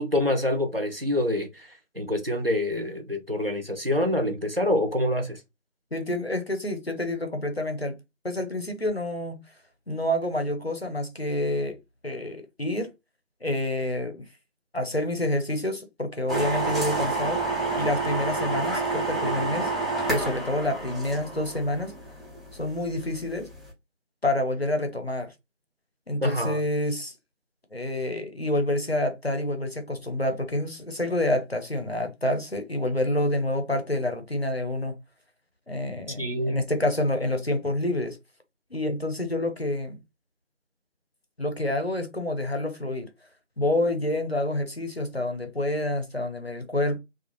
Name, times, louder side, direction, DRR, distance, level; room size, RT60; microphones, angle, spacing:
voice 1, 0.0-5.4 26.2-26.6 36.2-36.6, left 1 dB, 50° right, 0.6 m, -26 dB
voice 2, 5.9-7.9 8.2-9.4 9.9-11.8 12.0-12.9 13.4-14.2 14.7-17.4 17.7-19.7 20.1-21.9 22.5-23.5 24.2-25.3 26.1-27.1 27.7-34.9 35.7-38.2 38.7-40.0 41.4-43.1 43.6-47.0, left 1 dB, 50° left, 0.6 m, -28 dB
sound 1, 16.3-23.7, right 3 dB, ahead, 0.6 m, -29 dB
2.7 x 2.3 x 2.9 m
figure-of-eight pair, 180°, 38 cm